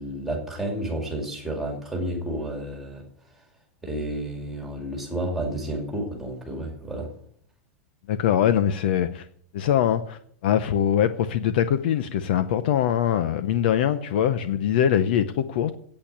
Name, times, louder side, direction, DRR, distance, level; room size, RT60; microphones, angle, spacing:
voice 1, 0.0-3.0 3.8-7.1, right 1 dB, ahead, 2.3 m, -31 dB
voice 2, 8.1-9.2 9.5-15.7, left 9 dB, 45° left, 0.6 m, -23 dB
8.7 x 8.4 x 8.6 m
supercardioid pair, 180°, 7 cm